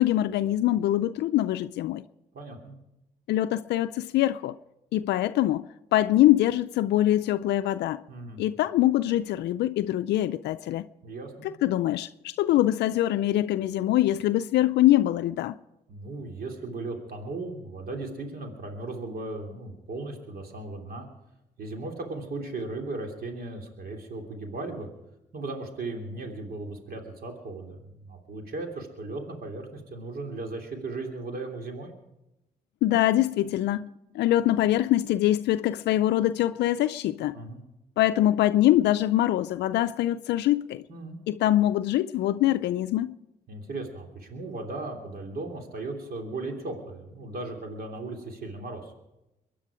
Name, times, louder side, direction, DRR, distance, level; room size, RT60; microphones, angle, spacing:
voice 1, 0.0-2.0 3.3-4.5 4.9-5.7 5.9-8.0 8.4-10.9 11.4-15.6 32.8-33.9 34.1-37.4 38.0-40.8 41.3-43.1, left 14 dB, 80° left, 0.4 m, -23 dB
voice 2, 2.3-2.8 8.1-8.4 11.0-11.5 15.9-21.1 21.6-24.9 25.3-31.9 37.3-37.6 40.9-41.2 43.5-48.9, right 2 dB, 60° right, 3.2 m, -37 dB
23.0 x 10.0 x 5.0 m
supercardioid pair, 50°, 18 cm